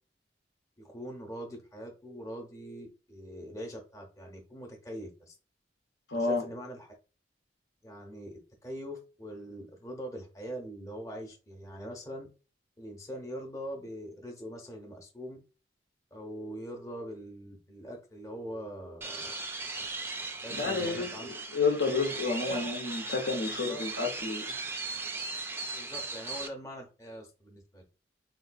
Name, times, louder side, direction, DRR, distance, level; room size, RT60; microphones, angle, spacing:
voice 1, 0.8-5.3 6.1-6.9 7.8-12.3 12.8-15.4 16.1-19.4 19.8-19.9 20.4-21.3 22.4-22.6 23.5-23.8 25.7-27.8, equal, 20° left, 0.7 m, -42 dB
voice 2, 6.1-6.4 20.5-24.4, left 4 dB, 85° left, 0.9 m, -30 dB
sound 1, 19.0-26.5, right 3 dB, 15° right, 0.3 m, -38 dB
3.7 x 2.2 x 2.5 m
head